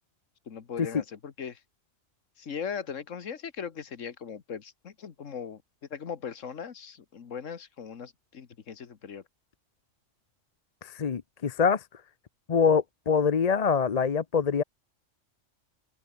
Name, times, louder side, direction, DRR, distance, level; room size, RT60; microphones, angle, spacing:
voice 1, 0.5-1.6 2.4-5.6 5.9-9.2, left 7 dB, 85° left, 1.8 m, -39 dB
voice 2, 10.8-11.8 12.5-14.6, left 6 dB, 40° left, 0.7 m, -24 dB
open air
omnidirectional pair, 1.3 m